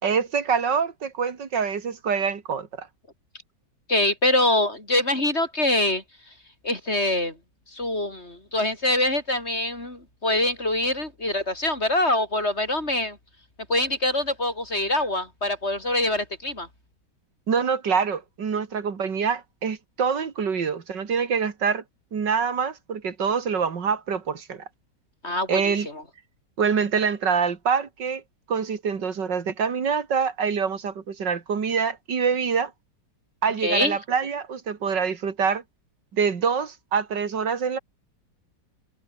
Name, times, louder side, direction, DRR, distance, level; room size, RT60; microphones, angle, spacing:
voice 1, 0.0-2.9 17.5-21.8 22.1-24.6 25.5-25.9 26.6-28.2 28.5-32.7 33.4-35.6 36.1-37.8, right 6 dB, 90° right, 2.8 m, -25 dB
voice 2, 3.9-6.0 6.6-7.4 7.7-13.2 13.7-16.7 25.2-26.0 33.6-34.0, left 1 dB, 35° left, 5.5 m, -24 dB
omnidirectional pair, 1.9 m